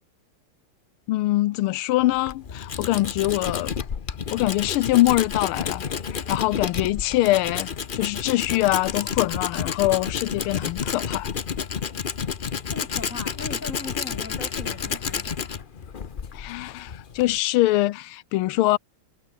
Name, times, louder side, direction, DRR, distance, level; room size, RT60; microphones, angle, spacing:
voice 1, 1.1-3.7 4.3-7.7 7.9-11.3 16.3-18.8, left 17 dB, 90° left, 1.5 m, -23 dB
Tools, 2.0-17.4, left 6 dB, 55° left, 0.5 m, -30 dB
voice 2, 12.7-15.5, left 3 dB, 35° left, 3.6 m, -39 dB
omnidirectional pair, 2.3 m